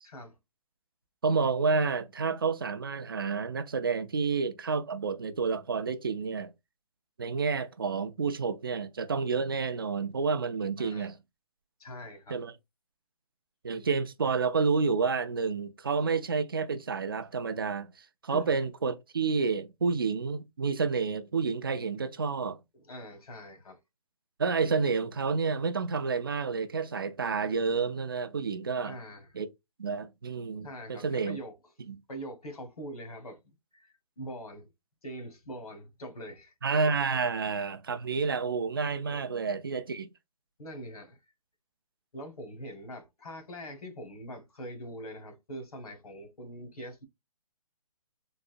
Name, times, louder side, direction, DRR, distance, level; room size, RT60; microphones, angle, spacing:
voice 1, 0.0-0.4 10.8-11.1 11.8-12.4 18.3-18.5 22.7-23.8 28.8-29.3 30.6-31.5 32.1-33.4 33.7-34.7 35.0-36.5 39.1-39.3 40.6-41.2 42.1-47.0, equal, 75° left, 1.6 m, -43 dB
voice 2, 1.2-6.5 7.2-11.2 12.3-12.5 13.6-22.6 24.4-28.9 29.3-29.5 29.8-31.4 31.9-32.0 36.6-40.1, right 5 dB, 40° right, 0.4 m, -29 dB
3.9 x 2.7 x 2.4 m
hypercardioid pair, 175°, 19 cm